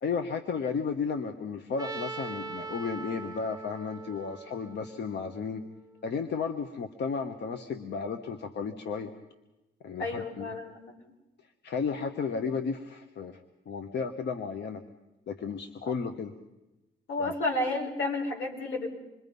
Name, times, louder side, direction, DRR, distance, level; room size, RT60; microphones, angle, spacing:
voice 1, 0.0-5.6 6.0-9.1 9.8-10.6 11.6-13.4 13.7-14.8 15.3-16.3 17.2-17.3, left 5 dB, 60° left, 7 dB, 1.3 m, -33 dB
Trumpet, 1.8-5.8, right 4 dB, 20° right, 1.0 m, -41 dB
voice 2, 10.0-10.9 15.8-15.9 17.1-18.9, left 2 dB, 85° left, 1 dB, 4.9 m, -31 dB
27.0 x 22.0 x 5.5 m, 0.99 s
cardioid pair, 90°, 20 cm